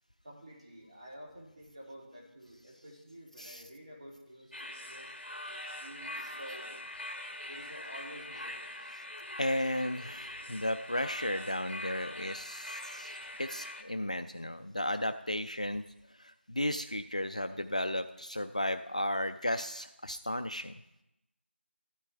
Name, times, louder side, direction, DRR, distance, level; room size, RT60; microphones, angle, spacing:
voice 1, 0.2-5.1 5.7-6.8 7.4-8.5 9.2-9.3, equal, 30° right, -3 dB, 2.6 m, -50 dB
sound 1, 4.5-13.8, left 1 dB, 60° left, 1.6 m, -43 dB
voice 2, 9.4-15.8 16.2-20.7, left 1 dB, 35° left, 9 dB, 0.3 m, -34 dB
13.5 x 12.5 x 3.4 m, 0.88 s
figure-of-eight pair, 175°, 7 cm